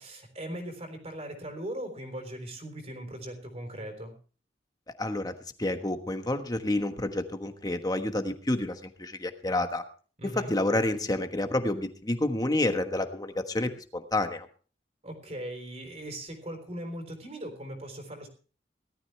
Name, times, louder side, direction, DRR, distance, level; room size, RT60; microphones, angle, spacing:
voice 1, 0.0-4.1 10.2-10.5 15.0-18.3, right 1 dB, 40° right, 5 dB, 3.8 m, -39 dB
voice 2, 5.0-5.3 5.6-9.8 10.3-14.5, left 1 dB, 20° left, 7 dB, 1.3 m, -29 dB
18.0 x 13.0 x 3.3 m, 0.39 s
head